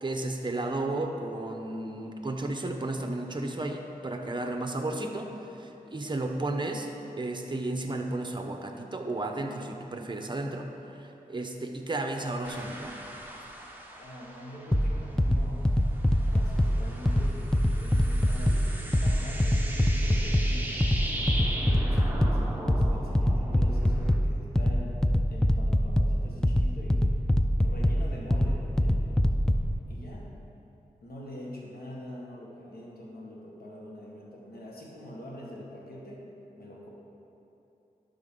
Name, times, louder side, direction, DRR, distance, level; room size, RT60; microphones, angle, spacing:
voice 1, 0.0-6.9 7.2-13.0, right 2 dB, 30° right, 3 dB, 0.9 m, -33 dB
sound 1, 12.4-15.3 15.7-24.2, right 1 dB, 10° right, 1.1 m, -39 dB
voice 2, 14.0-15.7 16.2-20.8 21.4-25.0 25.3-27.0 27.6-29.2 29.9-30.3 31.0-36.3 36.5-36.9, equal, 75° left, -3 dB, 1.6 m, -44 dB
sound 2, 14.7-29.7, equal, 5° left, 0.4 m, -25 dB
11.5 x 5.8 x 3.8 m, 3.0 s
cardioid pair, 65°, 16 cm